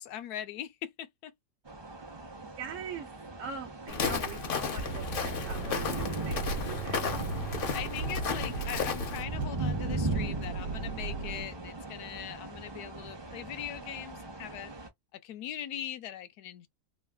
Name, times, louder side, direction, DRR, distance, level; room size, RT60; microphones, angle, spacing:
voice 1, 0.0-1.3 7.7-14.7 15.1-16.7, left 11 dB, 75° left, 1.1 m, -41 dB
sound 1, 1.7-14.9, right 2 dB, 35° right, 0.4 m, -39 dB
voice 2, 2.4-3.1 3.4-7.1 7.4-7.5, right 7 dB, 60° right, 0.9 m, -42 dB
Walk footsteps, 3.9-9.2, left 6 dB, 50° left, 0.6 m, -34 dB
sound 2, 4.8-11.4, right 4 dB, 85° right, 1.2 m, -37 dB
3.1 x 2.4 x 2.3 m
omnidirectional pair, 1.8 m